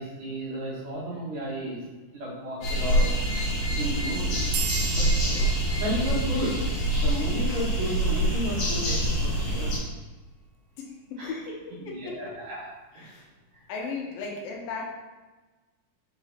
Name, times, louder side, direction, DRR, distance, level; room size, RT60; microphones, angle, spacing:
voice 1, 0.0-1.8 2.1-3.1 3.7-4.4 4.9-5.0 5.8-6.7 7.0-9.7 11.2-11.3 11.8-12.7 13.0-13.2, right 1 dB, 65° right, -6 dB, 3.3 m, -33 dB
sound 1, 2.6-9.8, right 1 dB, 55° left, 3.2 m, -25 dB
sound 2, 4.5-7.6, right 9 dB, 85° right, 2.4 m, -37 dB
voice 2, 5.0-5.5 10.8-12.2 12.9-13.3 13.7-14.9, left 4 dB, 75° left, 0 dB, 2.6 m, -37 dB
6.8 x 4.4 x 4.2 m, 1.2 s
omnidirectional pair, 4.2 m